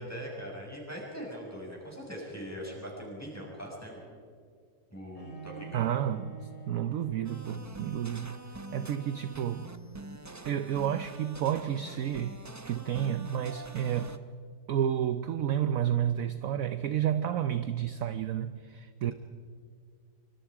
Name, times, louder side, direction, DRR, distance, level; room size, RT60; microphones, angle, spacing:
voice 1, 0.0-4.1 4.9-5.9, equal, 10° left, 6.3 m, -41 dB
Bowed string instrument, 5.1-8.1, right 8 dB, 50° left, 3.2 m, -47 dB
voice 2, 5.7-9.7 10.4-12.4 12.7-14.2 14.7-19.1, right 10 dB, 60° right, 1.0 m, -31 dB
sound 1, 7.2-14.2, right 2 dB, 20° right, 0.4 m, -45 dB
25.5 x 25.5 x 4.9 m
omnidirectional pair, 1.9 m